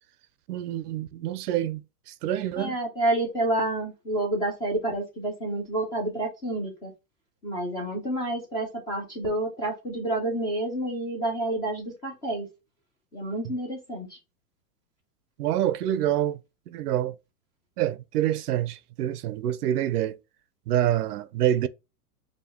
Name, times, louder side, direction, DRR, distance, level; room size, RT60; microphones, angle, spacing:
voice 1, 0.5-1.8 2.2-2.7 13.4-13.5 15.4-16.4 16.7-17.1 17.8-20.2 20.7-21.7, right 12 dB, 75° right, 0.6 m, -26 dB
voice 2, 2.6-6.9 7.4-12.5 13.1-14.2, right 1 dB, 10° left, 0.3 m, -29 dB
4.9 x 2.2 x 3.5 m
hypercardioid pair, 130°, 47 cm